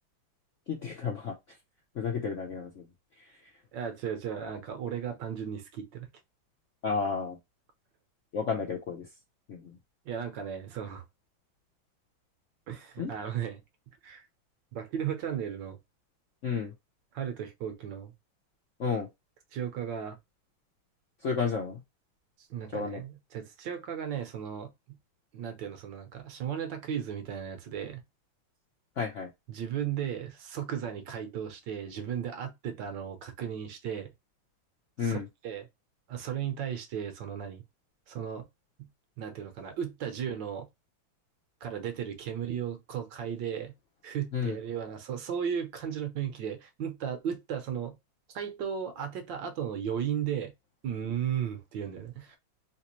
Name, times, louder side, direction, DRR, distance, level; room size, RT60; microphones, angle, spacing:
voice 1, 0.7-1.4 2.0-2.8 6.8-7.4 8.3-9.1 9.5-9.8 13.0-13.1 16.4-16.7 18.8-19.1 21.2-21.8 22.7-23.0 29.0-29.3 35.0-35.3 44.3-44.6, left 5 dB, 65° left, 0.7 m, -31 dB
voice 2, 3.7-6.1 10.0-11.0 12.7-13.6 14.0-14.2 14.7-15.8 17.1-18.1 19.5-20.2 22.5-24.7 25.3-28.0 29.5-34.1 35.0-35.2 35.4-35.7 36.1-37.6 38.1-38.5 39.2-40.7 41.6-43.7 44.0-47.9 48.3-50.5 50.8-52.4, right 8 dB, 70° right, 1.4 m, -35 dB
3.3 x 3.0 x 2.9 m
omnidirectional pair, 2.2 m